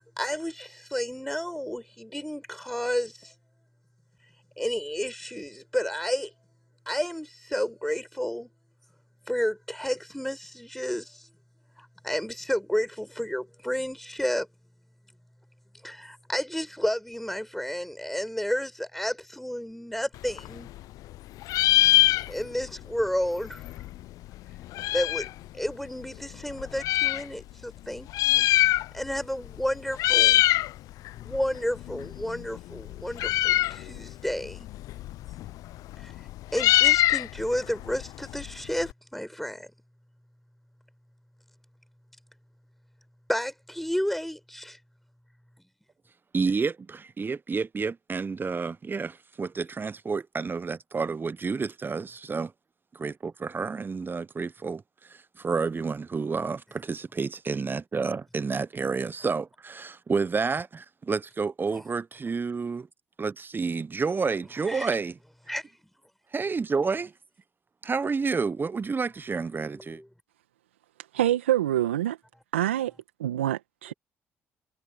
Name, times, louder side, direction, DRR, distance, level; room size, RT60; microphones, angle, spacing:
voice 1, 0.2-3.3 4.6-6.3 6.9-8.5 9.3-11.3 11.8-14.5 15.8-20.7 22.3-23.6 24.9-25.3 25.5-28.5 28.9-30.4 31.2-34.7 36.0-36.1 36.5-39.7 43.3-44.8 64.7-64.9 65.5-65.6 69.8-70.1, equal, 5° left, 5.9 m, -31 dB
Meow, 20.2-21.2 21.4-22.7 23.0-23.1 23.3-25.4 26.0-27.2 28.0-29.2 29.4-29.7 29.9-30.7 31.1-38.9, left 16 dB, 65° left, 0.8 m, -24 dB
voice 2, 46.3-52.5 52.9-62.9 63.2-65.1 66.3-67.1 67.8-70.0, right 4 dB, 30° right, 1.1 m, -30 dB
voice 3, 71.1-72.2 72.5-72.9 73.2-73.9, right 12 dB, 85° right, 1.7 m, -25 dB
hypercardioid pair, 45°, 6 cm